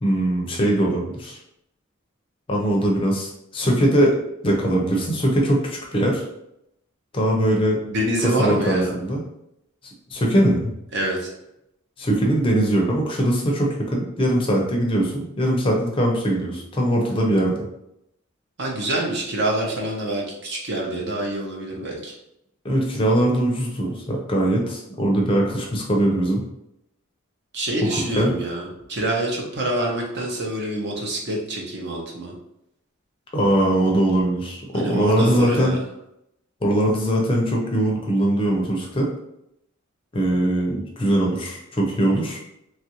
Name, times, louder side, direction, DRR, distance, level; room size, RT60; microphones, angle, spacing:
voice 1, 0.0-1.4 2.5-4.2 4.4-6.2 7.1-7.8 8.4-9.2 10.1-10.7 12.0-17.5 22.6-26.4 27.9-28.3 33.3-35.7 36.6-39.1 40.1-42.4, right 1 dB, 25° left, -1 dB, 0.5 m, -21 dB
voice 2, 7.8-9.0 10.9-11.3 18.6-22.1 27.5-32.3 34.7-35.8, right 1 dB, 55° right, 0 dB, 0.7 m, -26 dB
3.1 x 2.4 x 2.9 m, 0.81 s
head